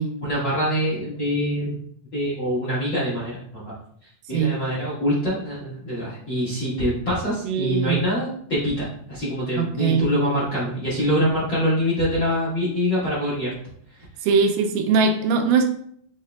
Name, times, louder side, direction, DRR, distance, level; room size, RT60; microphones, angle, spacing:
voice 1, 0.2-1.8 2.1-3.6 4.0-13.5 13.9-14.0, equal, 50° left, -8 dB, 1.3 m, -24 dB
voice 2, 7.4-8.0 9.6-10.1 14.2-15.7, right 5 dB, 85° right, 5 dB, 2.2 m, -21 dB
6.6 x 3.6 x 2.2 m, 0.65 s
omnidirectional pair, 3.7 m